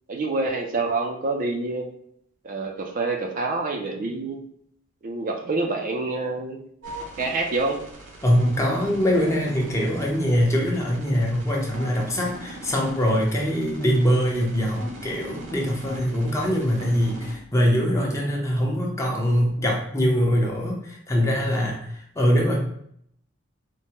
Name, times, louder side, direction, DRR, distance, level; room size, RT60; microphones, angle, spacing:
voice 1, 0.1-1.9 2.4-4.4 5.0-6.6 7.2-7.8, right 3 dB, 45° right, 2 dB, 0.4 m, -27 dB
sound 1, 6.8-17.3, right 1 dB, 70° right, 0.8 m, -40 dB
voice 2, 8.2-22.7, equal, 15° left, -1 dB, 0.7 m, -23 dB
4.5 x 2.1 x 2.8 m, 0.69 s
head